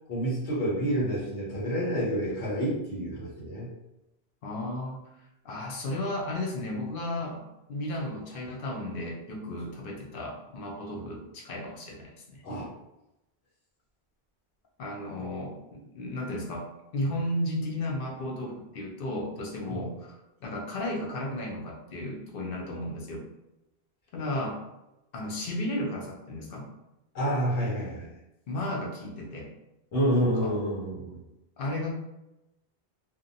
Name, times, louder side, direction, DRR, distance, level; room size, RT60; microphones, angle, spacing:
voice 1, 0.1-3.7 11.0-11.1 12.4-12.6 19.7-19.8 27.1-28.1 29.9-31.2, equal, 80° left, -6 dB, 1.1 m, -28 dB
voice 2, 4.4-5.0 5.4-12.4 14.8-20.2 20.4-23.3 24.1-24.6 25.1-26.7 28.5-29.5 30.2-30.5 31.6-31.9, left 1 dB, 60° left, -1 dB, 0.7 m, -34 dB
2.6 x 2.1 x 2.6 m, 0.92 s
omnidirectional pair, 1.1 m